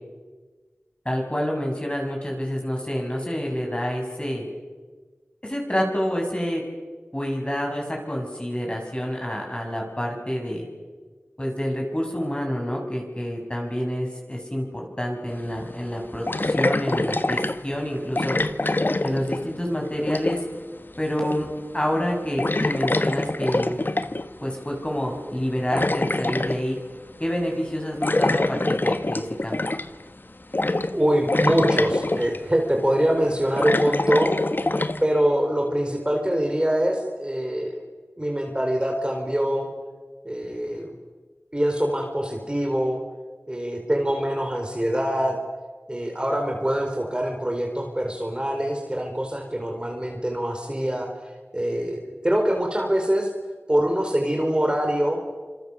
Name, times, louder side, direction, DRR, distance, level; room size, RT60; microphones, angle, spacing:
voice 1, 1.0-4.4 5.4-6.6 7.1-10.7 11.4-18.5 19.0-20.4 21.0-21.5 21.7-23.8 24.4-26.8 27.2-29.7, equal, 25° left, 0 dB, 7.4 m, -28 dB
sound 1, 15.3-15.4 16.3-17.6 18.2-19.7 19.9-20.5 21.2-21.6 21.9-22.1 22.4-24.3 25.3-26.6 28.0-30.0 30.5-31.0 31.3-32.4 33.1-35.0, left 2 dB, 45° left, 1.2 m, -24 dB
voice 2, 30.9-34.3 35.0-37.7 38.2-39.7 40.2-40.9 41.5-43.0 43.5-45.4 45.9-51.1 51.5-53.3 53.7-55.2, equal, 20° right, 1 dB, 4.4 m, -24 dB
26.5 x 26.0 x 7.1 m, 1.4 s
wide cardioid pair, 55°, 5 cm